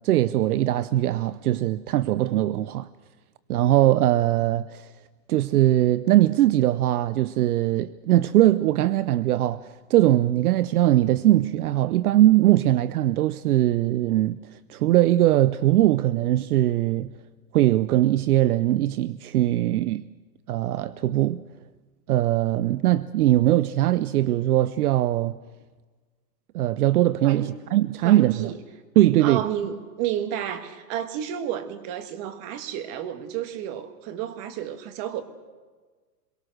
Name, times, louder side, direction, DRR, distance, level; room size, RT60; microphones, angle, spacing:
voice 1, 0.0-2.9 3.5-4.9 5.3-14.4 14.7-17.1 17.5-20.1 20.5-21.4 22.1-25.4 26.5-28.5 29.0-29.4, right 14 dB, 65° right, 0.7 m, -21 dB
voice 2, 28.0-28.6 29.2-35.2, right 10 dB, 30° right, 1.5 m, -31 dB
26.5 x 23.0 x 6.4 m
supercardioid pair, 165°, 48 cm